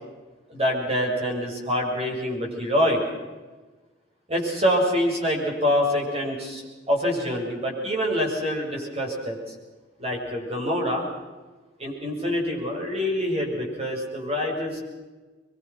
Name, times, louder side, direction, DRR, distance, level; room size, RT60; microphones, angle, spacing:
voice 1, 0.5-3.0 4.3-9.4 10.0-11.0 11.8-14.8, equal, 35° right, -1 dB, 7.2 m, -25 dB
24.5 x 23.5 x 6.2 m, 1.2 s
head